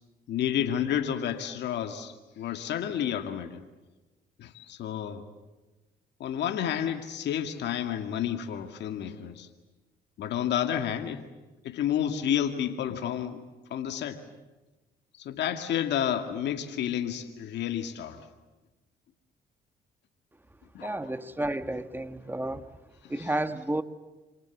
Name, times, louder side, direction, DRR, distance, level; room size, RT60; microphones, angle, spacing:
voice 1, 0.3-3.6 4.4-5.2 6.2-9.5 10.2-11.2 11.6-13.4 13.7-14.2 15.2-18.3 20.7-21.2 23.0-23.3, left 9 dB, 70° left, 7 dB, 2.2 m, -30 dB
voice 2, 20.8-22.6 23.1-23.8, right 1 dB, 10° right, 11 dB, 1.7 m, -31 dB
28.0 x 27.0 x 7.3 m, 1.1 s
supercardioid pair, 70°, 18 cm